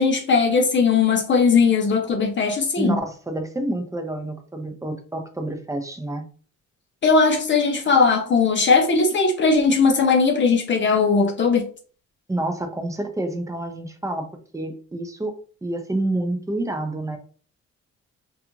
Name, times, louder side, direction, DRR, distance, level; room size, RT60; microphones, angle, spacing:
voice 1, 0.0-3.0 7.0-11.7, left 4 dB, 40° left, 0.6 m, -19 dB
voice 2, 2.8-6.2 12.3-14.3 14.5-17.2, right 1 dB, 10° right, 0.5 m, -28 dB
2.4 x 2.3 x 2.9 m
cardioid pair, 90°, 30 cm